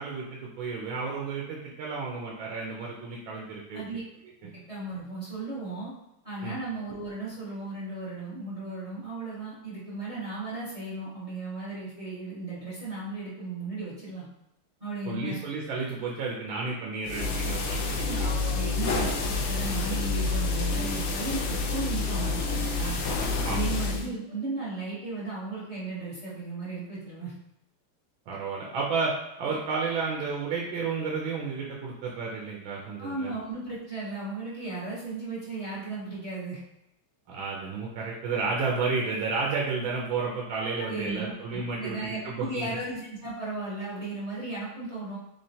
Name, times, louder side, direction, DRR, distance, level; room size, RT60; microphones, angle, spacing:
voice 1, 0.0-3.8 6.4-6.6 15.0-18.3 18.7-18.9 23.4-23.8 28.3-33.3 37.3-42.7, right 4 dB, 75° right, -2 dB, 1.3 m, -32 dB
voice 2, 3.7-4.0 4.4-5.9 6.2-14.3 14.8-15.4 18.0-23.0 23.4-27.3 33.0-36.6 40.8-45.2, right 2 dB, 50° right, -8 dB, 0.4 m, -36 dB
sound 1, 17.0-24.1, left 3 dB, 85° left, 0.9 m, -28 dB
3.7 x 3.2 x 2.7 m, 0.87 s
omnidirectional pair, 2.4 m